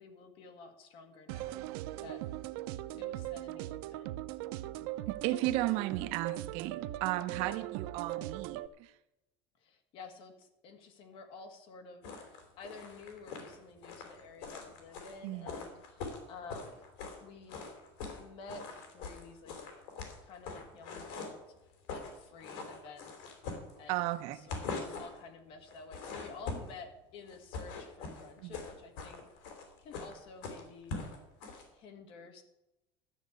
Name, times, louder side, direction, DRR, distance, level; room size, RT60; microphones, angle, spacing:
voice 1, 0.0-2.2 3.0-4.2 7.3-7.7 9.6-12.1 12.6-16.9 17.2-17.7 18.2-19.6 20.2-21.4 21.9-23.4 23.8-24.1 24.3-31.0 31.7-32.4, left 4 dB, 45° left, 7 dB, 1.8 m, -51 dB
sound 1, 1.3-8.7, right 15 dB, 85° right, 0.5 m, -40 dB
voice 2, 5.1-8.9 15.2-15.5 23.9-24.4 28.4-28.6, right 16 dB, 60° right, 11 dB, 0.9 m, -34 dB
sound 2, 12.0-17.2 17.5-18.2 18.5-21.4 21.7-22.1 22.4-24.1 24.4-25.2 25.7-26.8 27.3-31.6, left 4 dB, 80° left, 3.5 m, -42 dB
13.0 x 6.6 x 8.2 m, 0.94 s
cardioid pair, 170°, 12 cm